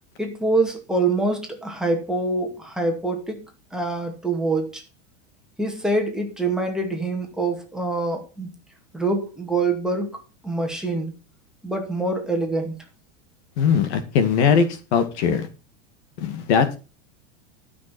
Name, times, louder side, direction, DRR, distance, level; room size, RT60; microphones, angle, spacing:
voice 1, 0.2-3.5 3.7-4.8 5.6-8.5 8.9-11.1 11.6-12.7, right 2 dB, ahead, 1 dB, 2.2 m, -25 dB
voice 2, 13.6-14.7 14.9-15.5 16.2-16.8, left 6 dB, 60° left, 11 dB, 2.2 m, -20 dB
12.5 x 6.2 x 6.2 m, 0.32 s
supercardioid pair, 160°, 37 cm